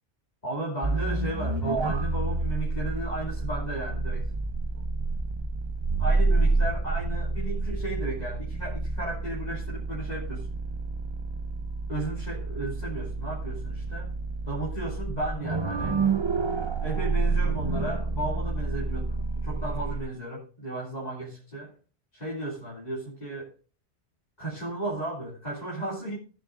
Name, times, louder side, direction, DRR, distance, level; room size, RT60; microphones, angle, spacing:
voice 1, 0.4-4.3 6.0-10.5 11.9-14.1 14.5-16.1 16.8-21.7 22.1-23.5 24.4-26.2, right 2 dB, 40° left, -6 dB, 2.9 m, -34 dB
sound 1, 0.8-20.0, right 3 dB, 30° right, 0.7 m, -29 dB
18.0 x 10.0 x 2.5 m, 0.37 s
omnidirectional pair, 1.1 m